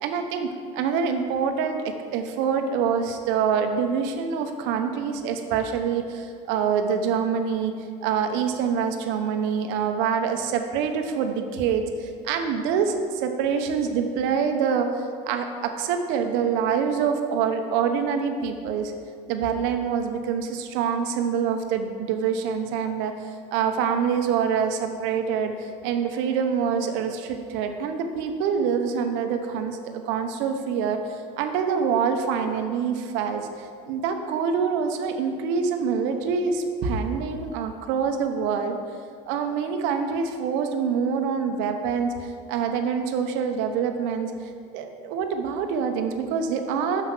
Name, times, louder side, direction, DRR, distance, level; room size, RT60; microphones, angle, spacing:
voice 1, 0.0-7.7 8.0-18.9 19.3-29.8 30.1-38.8 39.3-44.3 44.7-47.0, right 6 dB, 75° right, 6 dB, 0.9 m, -26 dB
6.9 x 5.8 x 6.1 m, 2.3 s
supercardioid pair, 90°, 19 cm